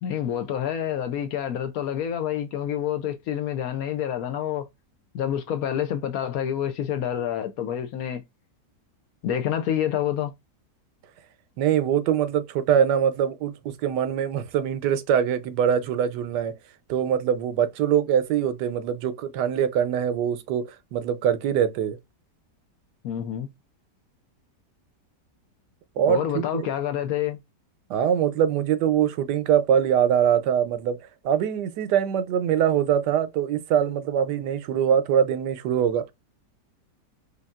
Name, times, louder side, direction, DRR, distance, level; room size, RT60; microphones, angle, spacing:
voice 1, 0.0-4.7 5.1-8.2 9.2-10.3 23.0-23.5 26.1-27.4, left 10 dB, 70° left, 0.9 m, -28 dB
voice 2, 11.6-16.5 16.9-22.0 26.0-26.7 27.9-36.1, right 9 dB, 80° right, 1.2 m, -23 dB
5.1 x 2.7 x 2.3 m
omnidirectional pair, 1.8 m